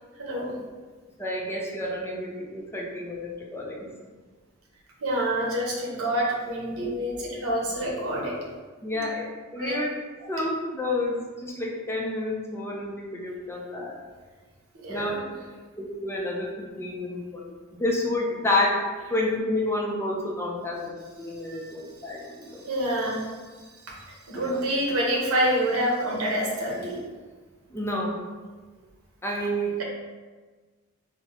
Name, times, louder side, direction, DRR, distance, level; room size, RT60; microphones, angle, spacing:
voice 1, 0.2-0.5 5.0-8.4 9.6-9.8 10.2-10.3 14.8-15.3 21.5-21.7 22.0-27.0, right 1 dB, 80° right, -3 dB, 0.8 m, -28 dB
voice 2, 1.2-3.9 8.8-9.2 9.5-9.9 10.3-14.0 14.9-15.1 15.8-17.5 17.8-18.8 19.1-20.9 21.2-22.6 24.3-24.5 27.7-28.2 29.2-29.8, left 1 dB, 10° left, -2 dB, 0.4 m, -29 dB
3.6 x 2.1 x 2.9 m, 1.4 s
head